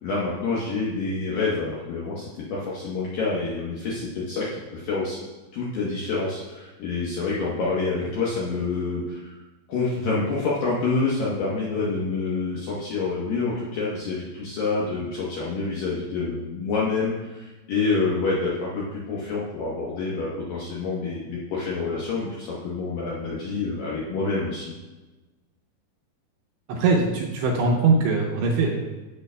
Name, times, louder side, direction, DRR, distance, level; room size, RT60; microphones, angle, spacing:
voice 1, 0.0-5.2 5.5-9.4 9.7-24.7, left 3 dB, 85° left, -6 dB, 2.0 m, -27 dB
voice 2, 26.7-29.0, right 3 dB, 80° right, -1 dB, 2.6 m, -22 dB
15.0 x 6.8 x 2.2 m, 1.2 s
omnidirectional pair, 5.8 m